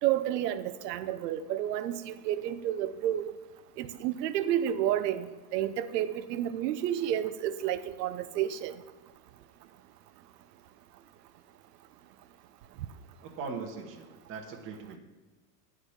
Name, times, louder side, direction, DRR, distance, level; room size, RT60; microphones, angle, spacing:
voice 1, 0.0-3.3 3.8-8.7, right 11 dB, 80° right, 12 dB, 0.8 m, -30 dB
voice 2, 13.2-15.0, right 5 dB, 25° right, 1 dB, 1.2 m, -40 dB
10.0 x 5.0 x 7.2 m, 1.3 s
supercardioid pair, 155°, 47 cm